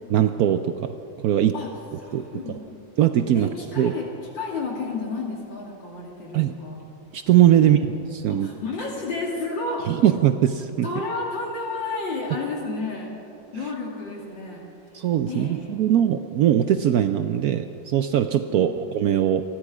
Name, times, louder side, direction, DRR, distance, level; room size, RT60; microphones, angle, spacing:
voice 1, 0.1-0.9 1.2-1.5 2.1-2.6 3.0-3.5 3.8-3.9 6.3-6.5 7.1-7.8 8.2-8.5 9.9-10.9 13.5-13.7 14.9-19.4, right 11 dB, 70° right, 9 dB, 0.9 m, -20 dB
voice 2, 2.0-2.6 3.3-4.0 4.4-6.8 7.6-7.8 8.3-9.8 10.8-13.1 13.5-14.6 15.3-15.5 18.5-18.8, left 3 dB, 75° left, -2 dB, 3.2 m, -31 dB
27.5 x 10.5 x 4.9 m, 2.6 s
omnidirectional pair, 2.0 m